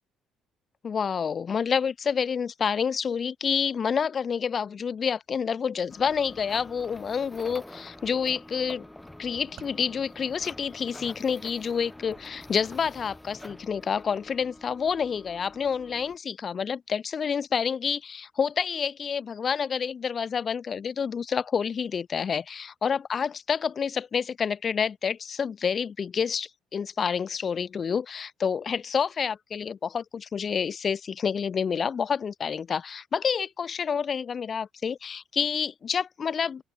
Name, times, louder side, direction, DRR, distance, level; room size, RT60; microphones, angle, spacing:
voice 1, 0.8-8.8 9.2-36.6, left 6 dB, 40° left, 0.8 m, -28 dB
sound 1, 5.9-16.2, left 1 dB, 10° left, 7.7 m, -47 dB
sound 2, 9.3-13.2, right 11 dB, 50° right, 7.1 m, -57 dB
open air
figure-of-eight pair, 45°, 0 cm